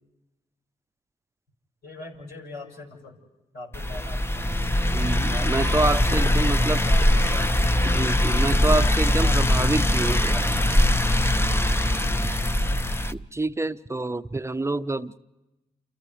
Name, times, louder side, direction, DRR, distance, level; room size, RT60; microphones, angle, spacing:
voice 1, 1.8-3.2 3.5-4.5 5.2-7.5 9.0-9.5 12.0-12.8, left 1 dB, 75° left, -2 dB, 5.7 m, -41 dB
sound 1, 3.7-13.1, left 1 dB, 15° left, 0.8 m, -22 dB
voice 2, 4.9-6.8 7.9-10.4 13.1-15.2, right 2 dB, 15° right, 12 dB, 0.8 m, -27 dB
29.5 x 28.5 x 3.4 m, 1.0 s
hypercardioid pair, 45°, 16 cm